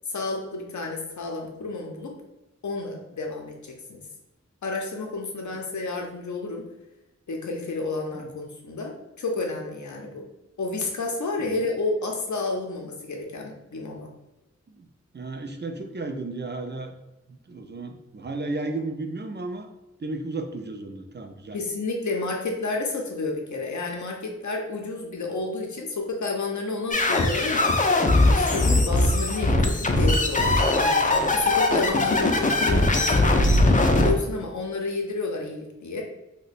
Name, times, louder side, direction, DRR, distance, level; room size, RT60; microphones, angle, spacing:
voice 1, 0.1-2.1 2.6-4.0 4.6-6.6 7.3-10.3 10.6-14.1 21.5-27.7 28.3-36.0, left 3 dB, 80° left, 1 dB, 0.6 m, -31 dB
voice 2, 15.1-16.9 17.5-19.7 20.0-21.6, right 2 dB, 40° right, 6 dB, 0.4 m, -33 dB
sound 1, 26.9-34.1, left 2 dB, 30° left, 0.4 m, -20 dB
2.9 x 2.1 x 4.1 m, 0.97 s
wide cardioid pair, 55°, 29 cm